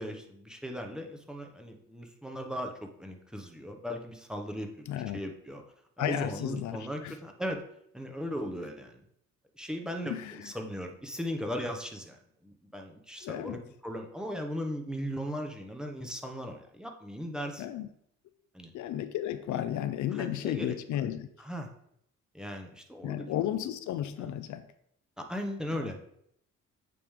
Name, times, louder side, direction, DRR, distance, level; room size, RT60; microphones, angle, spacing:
voice 1, 0.0-5.6 6.0-7.6 7.9-9.0 9.6-17.6 18.5-18.7 20.2-20.8 21.4-21.7 22.3-23.3 24.1-24.3 25.2-26.0, equal, ahead, 3 dB, 0.9 m, -38 dB
voice 2, 4.9-5.2 6.0-7.1 10.0-10.5 13.2-13.6 17.6-17.9 18.7-21.3 23.0-24.7 25.7-25.9, left 11 dB, 75° left, 11 dB, 0.5 m, -33 dB
8.4 x 3.3 x 3.6 m, 0.71 s
cardioid pair, 90°, 30 cm